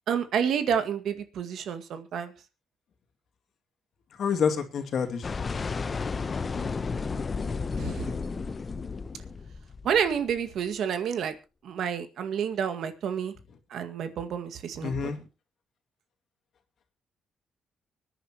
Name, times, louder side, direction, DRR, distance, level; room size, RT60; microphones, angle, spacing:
voice 1, 0.1-2.3 7.8-8.2 9.8-11.3 11.6-13.3 13.7-15.1, right 8 dB, 70° right, 8 dB, 1.9 m, -29 dB
voice 2, 4.2-5.3 14.8-15.2, left 6 dB, 60° left, 5 dB, 2.3 m, -27 dB
sound 1, 5.2-10.4, left 4 dB, 35° left, 0.8 m, -32 dB
24.5 x 10.0 x 3.0 m, 0.28 s
cardioid pair, 90°, 0 cm